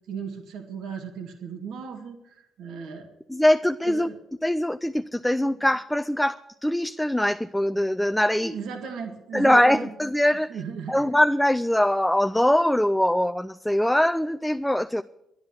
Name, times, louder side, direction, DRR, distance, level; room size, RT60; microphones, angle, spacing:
voice 1, 0.1-3.1 3.8-4.1 5.5-5.6 8.4-9.9 10.5-11.1, right 6 dB, 80° right, 3 dB, 1.9 m, -36 dB
voice 2, 3.3-4.1 4.4-8.5 9.3-10.5 10.9-15.0, left 1 dB, 5° left, 10 dB, 0.4 m, -22 dB
11.5 x 10.5 x 8.1 m, 0.85 s
supercardioid pair, 75°, 0 cm